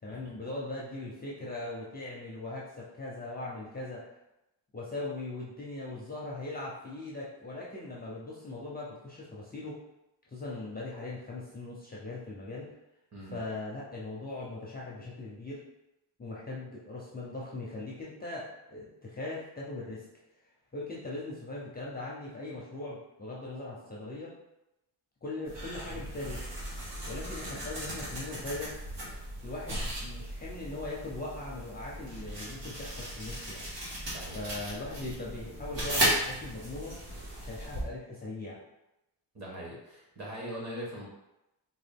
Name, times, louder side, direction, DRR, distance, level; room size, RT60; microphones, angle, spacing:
voice 1, 0.0-4.1 4.7-9.8 10.3-12.7 13.3-15.6 16.2-20.1 20.7-24.3 25.2-26.5 27.1-28.8 29.4-33.7 34.3-37.0 37.3-38.6, left 2 dB, 20° left, -6 dB, 0.4 m, -40 dB
voice 2, 13.1-13.4 27.4-27.6 34.1-34.4 39.3-41.1, equal, 35° right, -5 dB, 1.2 m, -41 dB
sound 1, 25.4-37.8, right 1 dB, 70° right, 1.4 m, -36 dB
3.8 x 2.3 x 3.4 m, 0.92 s
wide cardioid pair, 170°, 45 cm